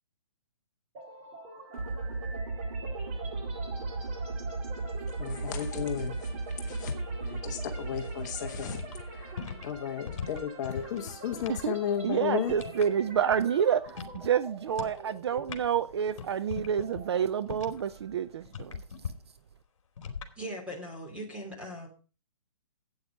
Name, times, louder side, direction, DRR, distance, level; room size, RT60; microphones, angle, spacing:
sound 1, 0.9-18.7, right 3 dB, 25° right, 2.0 m, -47 dB
sound 2, 1.7-9.9, right 3 dB, 75° right, 2.4 m, -36 dB
voice 1, 5.2-6.9 7.2-12.5, left 8 dB, 30° left, 1.1 m, -34 dB
sound 3, 7.9-11.7 12.0-13.6 13.9-14.3 14.7-15.0 15.3-17.9 18.5-19.1 20.0-20.3, left 6 dB, 55° left, 2.7 m, -40 dB
voice 2, 12.0-18.8, right 8 dB, 45° right, 0.6 m, -28 dB
voice 3, 20.3-21.9, equal, 5° right, 3.1 m, -39 dB
12.0 x 8.7 x 5.2 m
hypercardioid pair, 160°, 19 cm